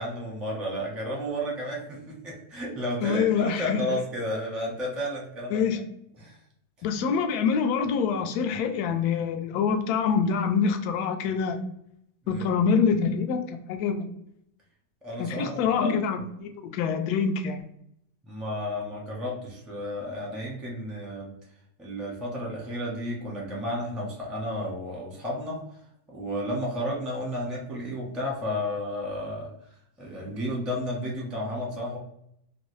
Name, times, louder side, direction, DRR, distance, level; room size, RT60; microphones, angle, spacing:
voice 1, 0.0-5.6 6.2-6.4 12.2-12.5 15.0-15.7 18.3-21.3 21.8-25.6 26.1-29.5 30.0-32.0, left 1 dB, ahead, -3 dB, 0.5 m, -32 dB
voice 2, 3.0-3.8 5.5-5.8 6.8-11.6 12.3-14.1 15.2-17.6, left 6 dB, 75° left, 6 dB, 1.0 m, -25 dB
3.0 x 2.6 x 3.1 m, 0.75 s
omnidirectional pair, 1.8 m